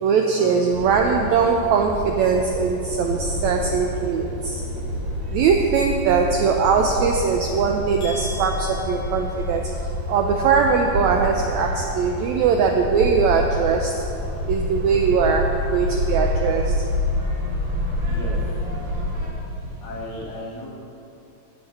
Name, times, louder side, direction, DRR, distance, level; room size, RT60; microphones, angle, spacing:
voice 1, 0.0-4.6 5.3-9.7 10.1-13.9 14.5-16.8, right 6 dB, 90° right, 2 dB, 1.6 m, -21 dB
sound 1, 0.7-19.3, left 1 dB, 45° right, 1.7 m, -28 dB
sound 2, 0.7-20.1, right 1 dB, 70° right, 3.1 m, -39 dB
voice 2, 0.8-1.1 18.1-18.6 19.8-20.7, left 1 dB, 80° left, -5 dB, 3.9 m, -35 dB
sound 3, 8.0-10.0, left 2 dB, 65° left, 3.5 m, -40 dB
10.5 x 7.3 x 6.6 m, 2.7 s
omnidirectional pair, 3.9 m